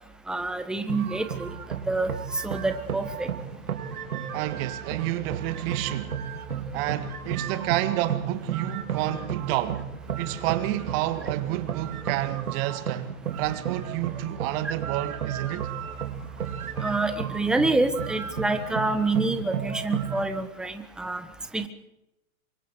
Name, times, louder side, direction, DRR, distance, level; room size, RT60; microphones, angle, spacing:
voice 1, 0.3-1.5 1.9-3.3 14.6-14.7 16.8-21.2 21.5-21.7, right 2 dB, ahead, 1.3 m, -27 dB
sound 1, 0.9-20.3, right 7 dB, 80° right, 3.1 m, -33 dB
voice 2, 4.3-6.2 6.7-9.9 10.2-13.1 13.4-15.7, right 15 dB, 40° right, 2.0 m, -29 dB
27.5 x 24.0 x 4.9 m
hypercardioid pair, 125°, 43 cm